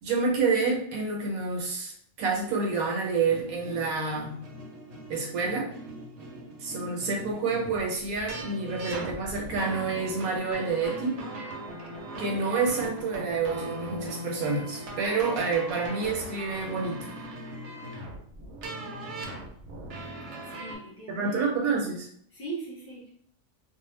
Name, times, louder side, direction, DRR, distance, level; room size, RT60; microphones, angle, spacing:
voice 1, 0.0-4.4 5.1-5.7 6.6-11.1 12.2-17.1 21.1-22.1, right 4 dB, 80° right, 0 dB, 1.1 m, -28 dB
sound 1, 3.2-20.8, right 1 dB, 60° right, 0.9 m, -39 dB
voice 2, 20.5-21.5 22.3-23.1, right 3 dB, 15° left, -7 dB, 0.5 m, -40 dB
2.5 x 2.1 x 3.1 m, 0.63 s
omnidirectional pair, 1.5 m